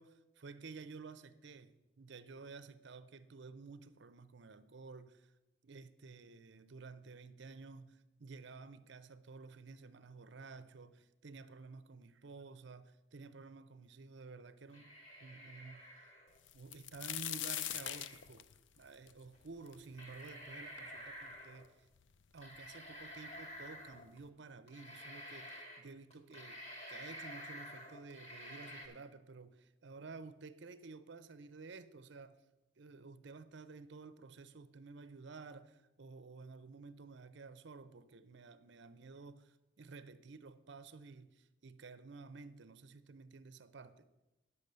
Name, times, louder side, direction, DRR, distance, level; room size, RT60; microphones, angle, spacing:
voice 1, 0.0-5.3 5.6-14.9 15.2-15.8 16.5-18.5 18.8-21.9 22.3-26.6 26.9-32.4 32.8-44.1, right 4 dB, 60° right, 0.6 m, -52 dB
sound 1, 14.7-16.4 17.3-18.2 19.3-19.4 19.9-21.6 22.4-24.2 24.7-25.8 26.1-28.9, equal, 30° left, 2.2 m, -50 dB
sound 2, 16.5-20.3 20.8-20.9 21.6-21.7 22.0-22.7 23.6-23.7 24.0-24.2, left 12 dB, 65° left, 0.4 m, -42 dB
10.0 x 6.9 x 6.7 m
head